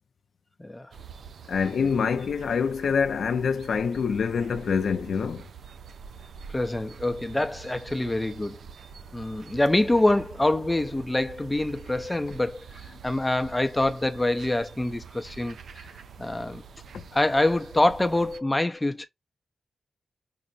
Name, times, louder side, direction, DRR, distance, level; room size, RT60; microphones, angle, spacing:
voice 1, 0.6-0.9 6.5-8.6 9.1-12.7 13.0-15.9 16.2-16.6 17.1-19.1, left 1 dB, 15° left, 0.5 m, -25 dB
sound 1, 0.9-18.4, right 6 dB, 80° right, 0.3 m, -46 dB
voice 2, 1.5-5.5 16.9-17.0, left 6 dB, 75° left, 0.4 m, -26 dB
5.2 x 2.0 x 2.5 m
cardioid pair, 85°, 0 cm